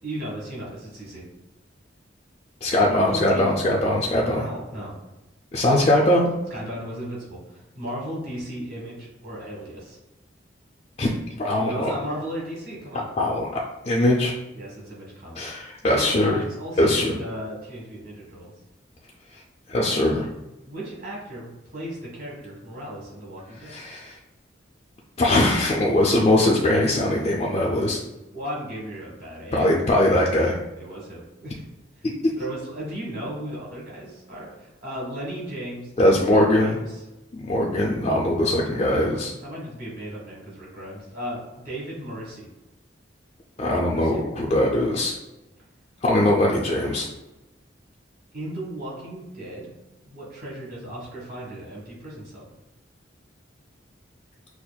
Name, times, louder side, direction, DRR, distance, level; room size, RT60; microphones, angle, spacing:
voice 1, 0.0-1.2 2.9-3.8 4.3-5.0 6.5-10.0 11.6-13.1 14.5-15.5 15.9-18.5 20.7-23.7 28.3-29.7 30.8-31.6 32.0-32.1 32.4-37.0 39.4-42.5 43.8-44.2 48.3-49.7 50.0-52.4, equal, 45° right, -5 dB, 1.4 m, -36 dB
voice 2, 2.6-4.4 5.5-6.3 11.0-11.9 13.2-14.3 15.4-16.4 16.8-17.1 19.7-20.3 23.7-24.2 25.2-28.0 29.5-30.6 32.0-32.1 36.0-36.8 37.3-39.3 43.6-45.2 46.0-47.1, left 1 dB, 30° left, -4 dB, 0.3 m, -21 dB
5.7 x 2.4 x 2.2 m, 1.0 s
head